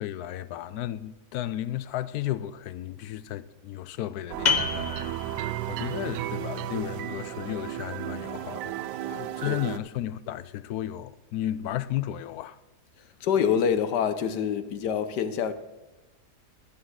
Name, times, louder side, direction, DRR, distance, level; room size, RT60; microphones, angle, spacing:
voice 1, 0.0-8.7 9.1-12.6, left 12 dB, 75° left, 1.1 m, -34 dB
sound 1, 4.3-9.8, right 12 dB, 85° right, 1.2 m, -34 dB
sound 2, 4.4-9.8, left 5 dB, 35° left, 0.7 m, -34 dB
voice 2, 9.1-9.6 13.2-15.5, left 7 dB, 90° left, 1.5 m, -26 dB
11.5 x 9.7 x 6.3 m
omnidirectional pair, 1.7 m